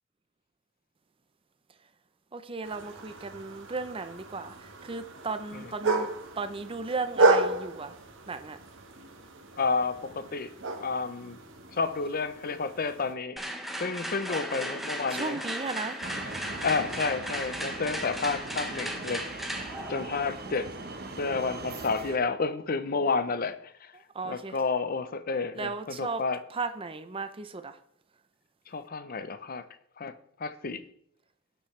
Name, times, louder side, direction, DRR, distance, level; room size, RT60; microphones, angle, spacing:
voice 1, 2.3-8.0 8.3-8.6 15.1-16.0 23.9-24.6 25.5-26.2 26.5-27.8, right 4 dB, 25° right, 0.6 m, -36 dB
sound 1, 2.6-13.1, right 2 dB, 65° right, 1.4 m, -32 dB
voice 2, 9.5-10.5 10.8-11.4 11.7-13.4 13.8-15.4 16.6-19.3 19.5-20.7 21.2-23.9 24.2-26.4 28.7-29.6 30.0-30.1 30.4-30.8, left 4 dB, 45° left, 0.7 m, -30 dB
sound 2, 13.4-21.3, equal, ahead, 1.0 m, -37 dB
sound 3, 16.0-22.2, right 3 dB, 50° right, 1.0 m, -40 dB
17.5 x 6.3 x 3.3 m
head